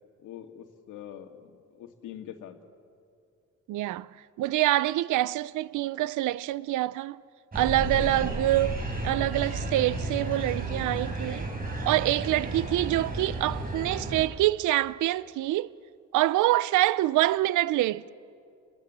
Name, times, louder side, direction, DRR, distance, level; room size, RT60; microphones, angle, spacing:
voice 1, 0.2-2.6 8.0-8.5, left 9 dB, 85° left, 2.1 m, -44 dB
voice 2, 3.7-4.1 4.4-7.2 7.5-11.5 11.9-15.7 16.1-18.1, right 15 dB, 80° right, 0.6 m, -26 dB
sound 1, 7.5-14.3, right 2 dB, 30° right, 5.1 m, -33 dB
29.5 x 21.5 x 7.5 m
cardioid pair, 90°, 30 cm